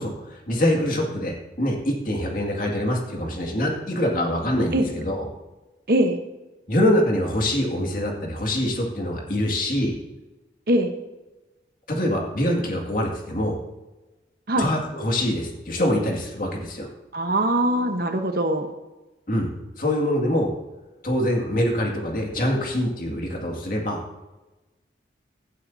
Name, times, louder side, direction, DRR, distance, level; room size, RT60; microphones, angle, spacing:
voice 1, 0.0-5.2 6.7-9.9 11.9-13.6 14.6-16.9 19.3-19.5 19.8-20.5 21.0-24.0, left 1 dB, 50° left, 0 dB, 2.2 m, -24 dB
voice 2, 5.9-6.2 10.7-10.9 14.5-14.7 17.1-18.7, right 1 dB, 55° right, 6 dB, 1.1 m, -22 dB
16.5 x 11.5 x 2.8 m, 1.1 s
head